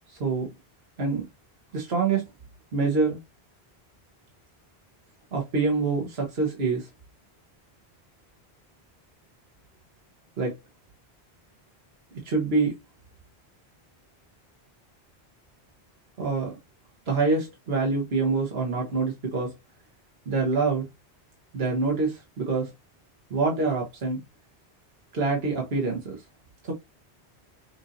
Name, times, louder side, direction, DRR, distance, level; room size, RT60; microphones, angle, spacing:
voice 1, 0.1-0.5 1.0-1.2 1.7-2.2 2.7-3.2 5.3-6.9 10.4-10.6 12.2-12.8 16.2-16.5 17.1-19.5 20.3-20.9 21.5-22.7 23.3-24.2 25.1-26.2 26.6-26.7, right 4 dB, 70° right, 1.5 m, -26 dB
6.1 x 2.7 x 2.8 m
omnidirectional pair, 1.1 m